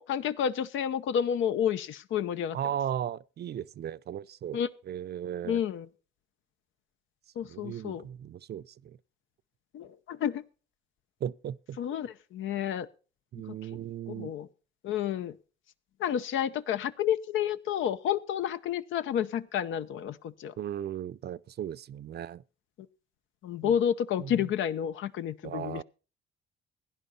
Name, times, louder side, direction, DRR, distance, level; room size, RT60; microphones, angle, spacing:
voice 1, 0.0-2.6 4.5-4.7 5.4-5.9 7.4-8.0 9.7-10.4 11.8-12.9 13.5-13.6 14.1-14.5 14.8-15.3 16.0-20.5 23.4-25.8, left 9 dB, 80° left, 1.0 m, -30 dB
voice 2, 2.5-5.6 7.5-9.0 11.2-11.8 13.3-14.3 20.6-22.4 23.6-23.7 24.2-24.5 25.4-25.8, right 10 dB, 55° right, 0.6 m, -36 dB
17.0 x 10.5 x 4.2 m
cardioid pair, 90°, 20 cm